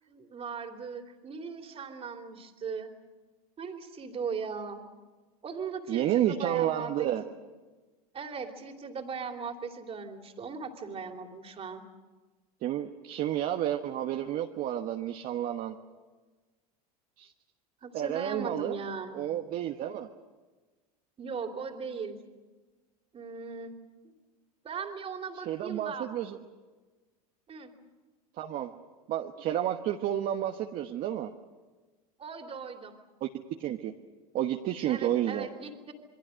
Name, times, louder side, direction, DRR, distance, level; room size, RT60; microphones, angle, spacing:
voice 1, 0.1-2.9 3.6-4.8 5.4-7.3 8.1-11.8 17.8-19.2 21.2-22.2 23.1-23.8 24.0-24.1 24.6-26.1 27.5-27.7 32.2-33.0 34.9-35.9, right 5 dB, 30° right, 4 dB, 3.0 m, -38 dB
voice 2, 5.9-7.2 12.6-15.7 17.2-17.3 17.9-18.8 19.1-20.1 25.4-26.4 28.4-28.7 29.1-31.3 33.2-33.3 33.6-33.9 34.3-35.5, right 11 dB, 45° right, 4 dB, 1.3 m, -30 dB
28.0 x 22.5 x 6.4 m, 1.3 s
hypercardioid pair, 100°, 19 cm